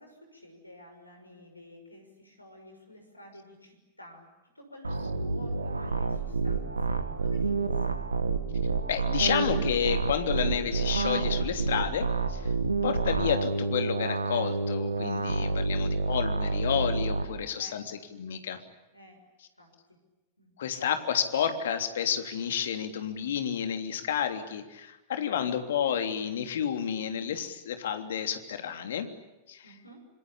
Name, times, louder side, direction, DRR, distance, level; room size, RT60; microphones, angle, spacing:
voice 1, 0.0-8.2 15.4-15.6 17.2-17.3 17.5-17.8 18.9-19.2 19.6-20.0 20.4-20.6 29.6-30.1, left 1 dB, 85° left, 5 dB, 6.1 m, -51 dB
sound 1, 4.8-17.2, right 3 dB, 80° right, 2.2 m, -29 dB
voice 2, 8.9-12.5 12.8-18.6 20.6-29.1 29.5-29.6, left 8 dB, 60° left, 7 dB, 3.2 m, -30 dB
26.5 x 26.5 x 8.6 m, 1.1 s
figure-of-eight pair, 90°, 0 cm